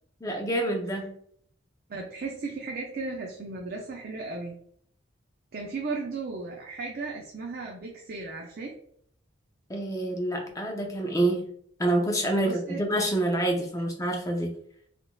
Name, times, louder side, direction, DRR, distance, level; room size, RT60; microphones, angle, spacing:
voice 1, 0.2-1.1 9.7-11.5 11.8-14.5, right 1 dB, 15° left, 1 dB, 0.6 m, -27 dB
voice 2, 1.9-4.6 5.5-8.8 12.4-12.8, right 3 dB, 50° right, 0 dB, 0.5 m, -35 dB
3.6 x 2.5 x 2.3 m, 0.64 s
head